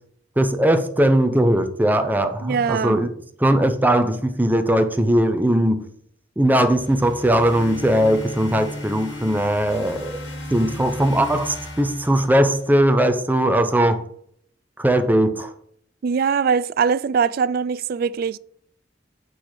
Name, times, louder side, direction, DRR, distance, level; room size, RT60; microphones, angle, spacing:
voice 1, 0.4-3.1 3.4-5.8 6.4-10.2 10.5-14.0 14.8-15.5, right 1 dB, 10° right, 0.8 m, -19 dB
voice 2, 2.4-3.0 16.0-18.4, right 6 dB, 55° right, 0.3 m, -22 dB
sound 1, 6.7-12.8, left 1 dB, 90° left, 2.7 m, -35 dB
8.9 x 4.2 x 6.4 m
head